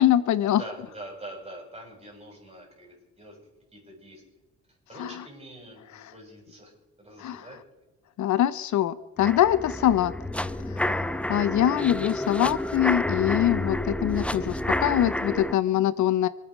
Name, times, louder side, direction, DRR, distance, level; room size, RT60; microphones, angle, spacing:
voice 1, 0.0-0.6 5.0-5.1 7.2-7.4 8.2-10.1 10.7-16.3, left 12 dB, 70° left, 16 dB, 0.8 m, -24 dB
voice 2, 0.6-3.4 3.7-4.2 4.9-7.6 11.3-11.8, right 1 dB, 20° right, 1 dB, 6.9 m, -44 dB
sound 1, 9.2-15.5, left 1 dB, 5° left, 0.7 m, -29 dB
27.5 x 9.2 x 5.1 m, 1.1 s
cardioid pair, 90°, 30 cm